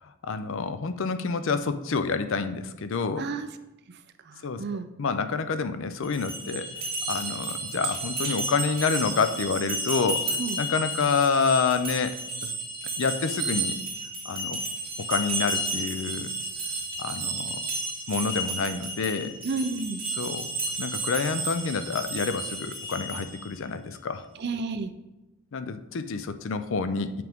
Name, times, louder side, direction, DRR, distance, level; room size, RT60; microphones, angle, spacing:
voice 1, 0.0-3.2 4.4-4.6 5.0-6.8 7.1-12.5 13.0-13.8 14.2-14.6 15.0-16.3 17.0-17.6 18.1-19.4 20.2-20.5 20.8-24.3 25.5-27.2, left 5 dB, 65° left, 11 dB, 0.5 m, -28 dB
voice 2, 3.2-3.5 4.2-4.9 10.4-10.6 19.4-20.0 24.4-24.9, right 4 dB, 55° right, 10 dB, 0.5 m, -31 dB
sound 1, 6.0-23.5, right 2 dB, 25° right, 2.1 m, -32 dB
7.6 x 5.8 x 3.6 m, 0.99 s
head